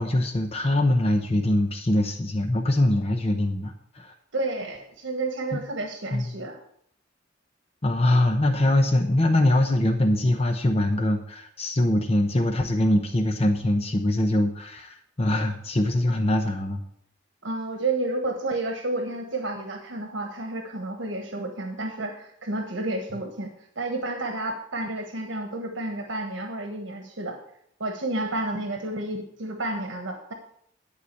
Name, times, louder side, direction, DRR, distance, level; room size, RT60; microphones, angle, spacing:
voice 1, 0.0-4.1 5.5-5.6 6.1-6.3 7.8-16.8, left 1 dB, 30° left, 5 dB, 0.8 m, -23 dB
voice 2, 4.3-6.6 17.4-27.4 27.8-30.3, right 2 dB, 75° right, 3 dB, 1.3 m, -31 dB
11.0 x 4.9 x 8.2 m, 0.69 s
head